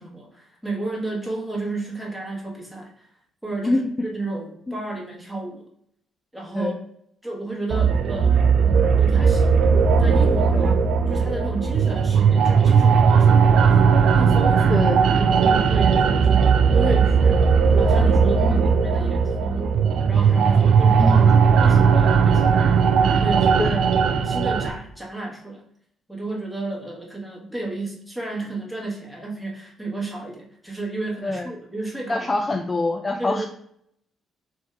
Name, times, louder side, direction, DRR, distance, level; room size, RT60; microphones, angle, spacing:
voice 1, 0.0-3.1 3.4-5.6 6.3-6.7 7.2-9.5 10.0-10.7 11.1-13.6 14.1-17.5 17.7-23.8 24.2-25.6 26.1-32.3 33.2-33.5, right 2 dB, ahead, -2 dB, 1.3 m, -32 dB
sound 1, 7.7-24.7, right 6 dB, 70° right, 0.4 m, -17 dB
voice 2, 21.0-21.3 23.6-23.8 31.2-31.5 32.1-33.5, left 2 dB, 25° left, 4 dB, 0.3 m, -25 dB
3.6 x 2.7 x 4.4 m, 0.69 s
cardioid pair, 90°, 0 cm